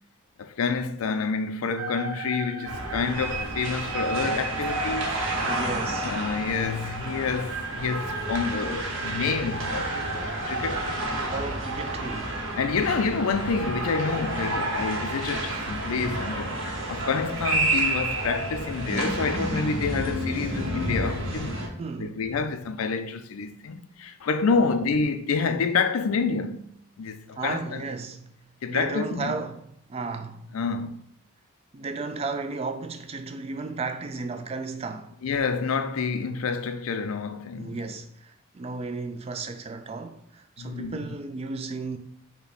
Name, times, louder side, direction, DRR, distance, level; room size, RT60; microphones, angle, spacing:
voice 1, 0.4-5.1 6.0-10.1 10.4-11.0 12.6-21.6 22.0-26.7 27.0-27.8 28.6-29.4 30.5-31.0 35.2-38.0 40.6-41.0, left 5 dB, 85° left, 0.4 m, -28 dB
sound 1, 1.8-10.4, right 3 dB, 85° right, 0.5 m, -36 dB
sound 2, 2.6-21.7, right 1 dB, 65° right, 1.0 m, -30 dB
voice 2, 5.5-6.1 11.3-12.4 21.8-22.2 24.5-24.6 27.4-28.3 28.7-30.6 31.7-35.1 37.5-42.0, right 3 dB, 30° right, 0.3 m, -34 dB
5.6 x 2.2 x 4.1 m
head